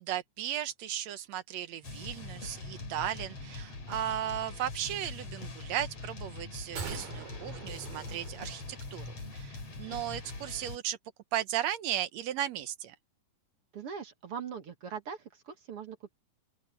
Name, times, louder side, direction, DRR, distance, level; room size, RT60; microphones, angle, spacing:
voice 1, 0.0-11.0 11.3-13.0, right 11 dB, 70° right, 1.8 m, -36 dB
sound 1, 1.8-10.8, left 3 dB, 50° left, 6.1 m, -43 dB
sound 2, 6.8-9.1 9.4-9.5, right 6 dB, 85° right, 5.1 m, -43 dB
voice 2, 13.7-16.1, right 7 dB, 50° right, 2.3 m, -41 dB
open air
omnidirectional pair, 3.7 m